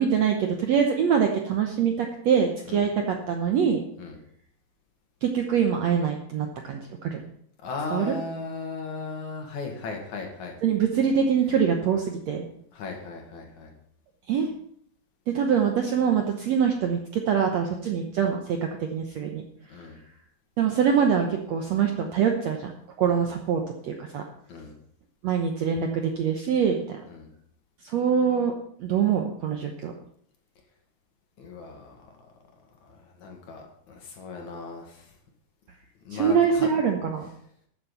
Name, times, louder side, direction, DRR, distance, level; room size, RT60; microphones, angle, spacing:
voice 1, 0.0-3.8 5.2-7.2 7.9-8.1 10.6-12.5 14.3-14.5 15.3-19.4 20.6-22.7 23.0-24.2 25.2-27.0 27.8-28.5 28.8-29.9 36.1-37.3, right 7 dB, 70° right, 3 dB, 1.7 m, -24 dB
voice 2, 7.6-10.6 12.7-13.7 19.7-20.0 23.1-23.3 24.5-24.7 27.0-27.3 31.4-32.3 32.8-35.1 36.0-36.7, left 4 dB, 60° left, 2 dB, 3.1 m, -37 dB
13.5 x 7.5 x 5.7 m, 0.66 s
omnidirectional pair, 4.2 m